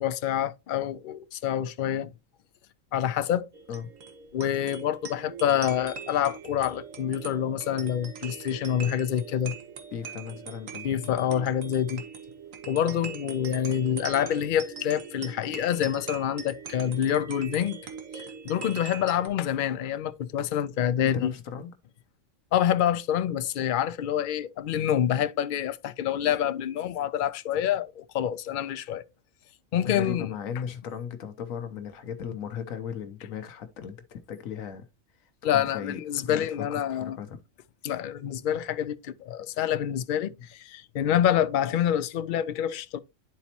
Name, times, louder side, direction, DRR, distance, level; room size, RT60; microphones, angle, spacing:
voice 1, 0.0-2.1 2.9-3.5 4.3-9.6 10.8-12.0 12.7-17.8 18.1-21.3 22.5-29.0 29.7-30.3 35.4-37.2 37.8-43.0, left 10 dB, 60° left, 0.5 m, -27 dB
sound 1, 3.5-19.3, right 6 dB, 75° right, 1.5 m, -41 dB
voice 2, 9.9-10.9 21.0-21.7 29.8-34.9 35.2-37.4, left 7 dB, 85° left, 1.2 m, -37 dB
10.5 x 4.1 x 2.9 m
omnidirectional pair, 1.4 m